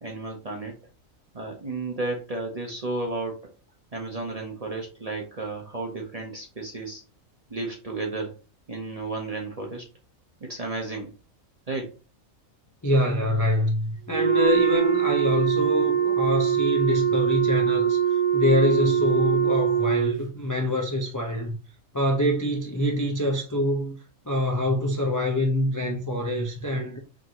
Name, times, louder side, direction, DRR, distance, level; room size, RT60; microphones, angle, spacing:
voice 1, 0.0-0.8 1.3-3.4 3.9-7.0 7.5-8.4 8.7-9.8 10.4-11.1 11.7-11.9, right 2 dB, 35° right, 0.7 m, -33 dB
voice 2, 12.8-21.6 21.9-24.0 24.3-27.0, left 1 dB, 25° left, 0.4 m, -25 dB
Wind instrument woodwind instrument, 14.1-20.2, right 8 dB, 85° right, 1.3 m, -23 dB
5.0 x 2.6 x 2.9 m
omnidirectional pair, 1.4 m